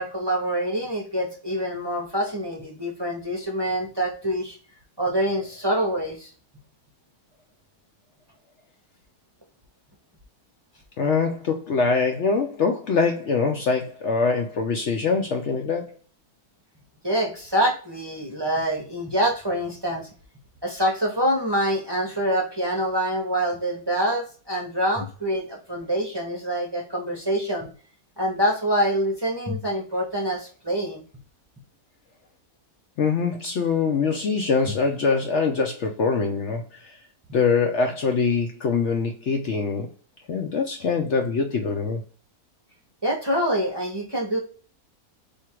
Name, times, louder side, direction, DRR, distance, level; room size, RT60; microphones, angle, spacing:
voice 1, 0.0-4.6 5.0-6.3 17.0-20.1 20.6-27.7 28.2-31.0 43.0-44.4, equal, 20° right, 0.9 m, -25 dB
voice 2, 11.0-15.9 33.0-37.0 37.3-39.9 40.3-42.0, left 5 dB, 60° left, 0.8 m, -23 dB
3.5 x 2.8 x 4.4 m
omnidirectional pair, 1.6 m